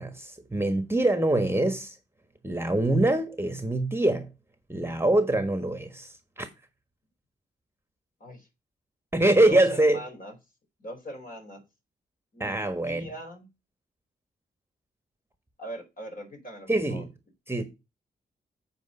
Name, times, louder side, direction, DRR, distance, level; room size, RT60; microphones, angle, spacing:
voice 1, 0.0-2.0 2.4-4.3 4.7-6.5 9.1-10.0 12.4-13.1 16.7-17.1 17.5-17.6, right 1 dB, 10° right, 1.4 m, -24 dB
voice 2, 9.4-10.3 10.8-11.6 12.3-12.6 12.8-13.5 15.6-17.1, equal, 45° left, 4.4 m, -41 dB
7.9 x 4.7 x 5.5 m
supercardioid pair, 40°, 20 cm